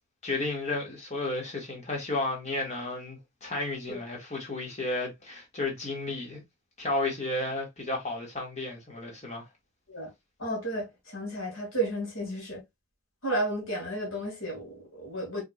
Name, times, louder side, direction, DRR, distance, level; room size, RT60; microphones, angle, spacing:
voice 1, 0.2-6.4 6.8-9.4, left 2 dB, 35° left, 1.7 m, -33 dB
voice 2, 10.4-12.6 13.2-15.4, right 1 dB, 70° left, 2.2 m, -32 dB
4.5 x 3.6 x 2.4 m
head